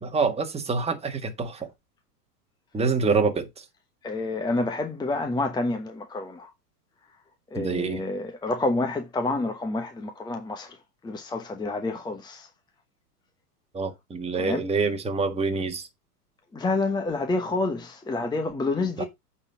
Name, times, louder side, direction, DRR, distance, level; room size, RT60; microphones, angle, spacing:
voice 1, 0.0-1.7 2.7-3.5 7.5-8.0 13.7-15.8 19.0-19.1, right 4 dB, 15° right, 1.7 m, -26 dB
voice 2, 4.0-6.5 7.5-10.8 11.0-12.5 14.4-14.6 16.5-19.0, left 2 dB, 10° left, 1.1 m, -28 dB
8.8 x 4.3 x 5.6 m
hypercardioid pair, 115°, 47 cm